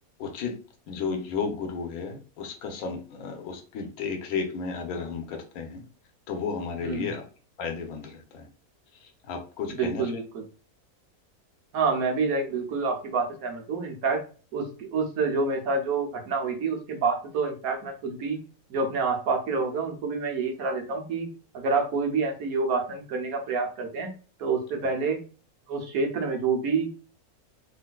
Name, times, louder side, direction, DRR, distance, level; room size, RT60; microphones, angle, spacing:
voice 1, 0.2-0.6 0.9-5.8 6.3-7.2 7.6-8.5 9.0-10.1, left 5 dB, 75° left, 4 dB, 1.2 m, -33 dB
voice 2, 6.8-7.1 9.7-10.4 11.7-14.2 14.5-18.4 18.7-21.3 21.5-24.1 24.4-25.2 25.7-27.1, right 4 dB, 70° right, 3 dB, 1.3 m, -28 dB
3.7 x 2.5 x 2.2 m, 0.37 s
omnidirectional pair, 1.6 m